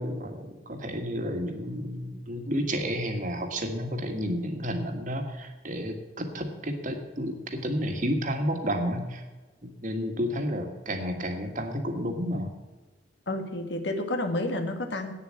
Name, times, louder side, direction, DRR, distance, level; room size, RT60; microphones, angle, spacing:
voice 1, 0.0-9.2 9.6-12.5, equal, 50° right, 5 dB, 1.7 m, -31 dB
voice 2, 13.3-15.1, left 1 dB, 80° left, 6 dB, 1.6 m, -30 dB
9.0 x 7.2 x 7.5 m, 1.2 s
head